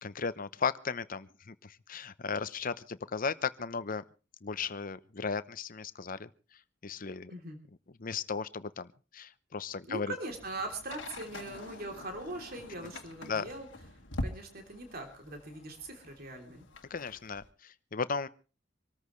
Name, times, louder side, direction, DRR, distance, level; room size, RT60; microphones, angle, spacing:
voice 1, 0.0-4.0 4.4-6.3 6.8-7.3 8.0-10.1 13.3-13.5 16.9-18.3, left 5 dB, 45° left, 14 dB, 0.8 m, -36 dB
voice 2, 9.9-13.7 14.2-16.6, right 2 dB, 55° right, 3 dB, 3.2 m, -41 dB
sound 1, 10.3-17.5, left 1 dB, 75° left, 1.8 m, -45 dB
26.0 x 13.5 x 3.2 m, 0.34 s
head